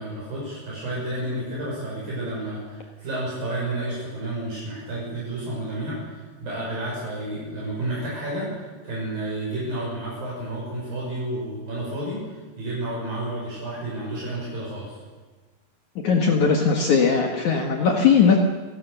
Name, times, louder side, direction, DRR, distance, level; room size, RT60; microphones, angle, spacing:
voice 1, 0.0-15.0, right 1 dB, 60° right, -5 dB, 8.2 m, -31 dB
voice 2, 16.0-18.4, left 6 dB, 60° left, 3 dB, 2.5 m, -19 dB
28.5 x 17.0 x 6.8 m, 1.3 s
omnidirectional pair, 4.6 m